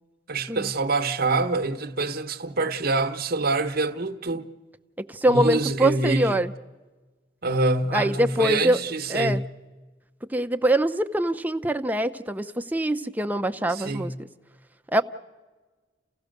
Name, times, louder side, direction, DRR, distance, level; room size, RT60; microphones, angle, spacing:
voice 1, 0.3-4.5 5.3-6.5 7.4-9.5 13.7-14.1, right 3 dB, 55° right, 1.1 m, -26 dB
voice 2, 5.0-6.5 7.9-8.8 9.1-9.4 10.3-14.1 14.9-15.0, right 1 dB, 10° right, 0.7 m, -24 dB
29.5 x 16.0 x 6.6 m
head